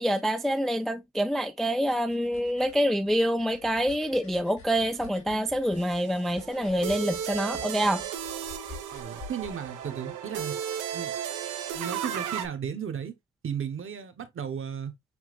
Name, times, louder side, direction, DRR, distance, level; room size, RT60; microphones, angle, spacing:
voice 1, 0.0-8.0, equal, ahead, 0.4 m, -26 dB
sound 1, 1.6-10.6, left 3 dB, 85° left, 2.3 m, -49 dB
sound 2, 5.8-12.5, right 9 dB, 85° right, 1.0 m, -35 dB
voice 2, 8.9-10.6 10.9-11.1 11.7-13.1 13.4-14.9, right 7 dB, 45° right, 1.1 m, -35 dB
7.1 x 2.8 x 2.4 m
cardioid pair, 90°, 30 cm